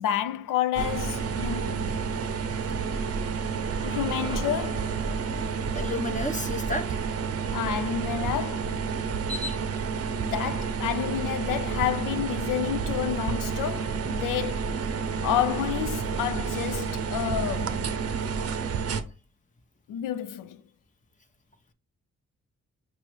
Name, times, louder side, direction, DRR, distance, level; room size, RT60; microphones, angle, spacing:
voice 1, 0.0-2.0 3.8-5.0 7.5-8.8 10.1-14.8 15.2-17.9 19.9-20.6, left 11 dB, 75° left, 0.5 m, -30 dB
sound 1, 0.7-19.0, right 5 dB, 45° right, 0.6 m, -30 dB
sound 2, 3.5-7.7, right 2 dB, 15° right, 0.7 m, -45 dB
voice 2, 5.7-7.0, left 2 dB, 25° left, 0.9 m, -31 dB
5.3 x 3.0 x 3.0 m
supercardioid pair, 45°, 33 cm